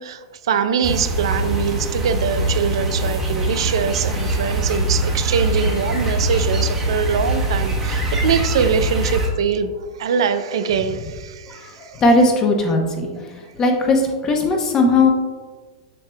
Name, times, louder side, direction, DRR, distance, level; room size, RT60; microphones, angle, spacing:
voice 1, 0.0-9.7 10.0-12.0, right 7 dB, 75° right, 10 dB, 0.5 m, -23 dB
sound 1, 0.8-9.3, right 1 dB, 15° right, 1.2 m, -22 dB
voice 2, 11.5-15.1, left 2 dB, 20° left, 3 dB, 0.9 m, -18 dB
7.5 x 6.5 x 2.3 m, 1.4 s
supercardioid pair, 155°, 3 cm